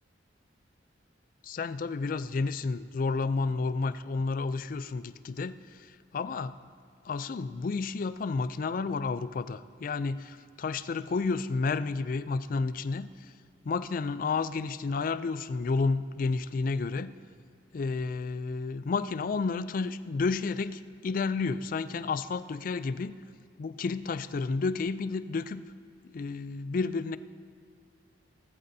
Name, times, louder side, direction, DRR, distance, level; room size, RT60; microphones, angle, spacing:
voice 1, 1.4-6.5 7.0-13.3 13.6-17.1 17.7-23.1 23.6-25.6 26.1-27.2, left 4 dB, 45° left, 14 dB, 0.3 m, -31 dB
18.0 x 14.0 x 2.7 m, 2.3 s
head